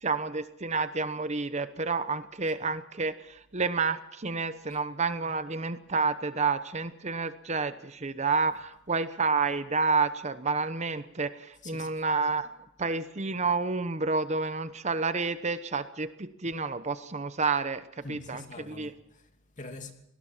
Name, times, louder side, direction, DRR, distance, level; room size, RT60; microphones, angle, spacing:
voice 1, 0.0-12.5 12.8-18.4 18.7-18.9, right 4 dB, 35° right, 1.0 m, -29 dB
voice 2, 11.6-12.0 18.0-19.9, left 2 dB, 40° left, 2.7 m, -45 dB
24.5 x 19.0 x 7.4 m
head